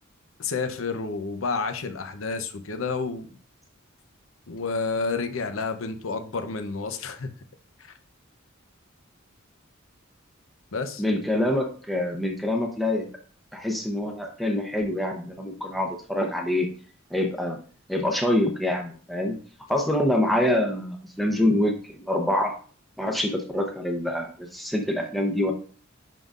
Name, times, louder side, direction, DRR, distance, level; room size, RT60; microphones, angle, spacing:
voice 1, 0.4-3.3 4.5-7.3 7.8-7.9 10.7-11.0, left 4 dB, 75° left, 7 dB, 0.7 m, -30 dB
voice 2, 11.0-13.1 13.5-16.7 17.1-17.6 17.9-19.4 19.7-22.5 23.0-25.5, left 1 dB, ahead, 1 dB, 0.7 m, -25 dB
10.5 x 3.8 x 2.5 m, 0.42 s
head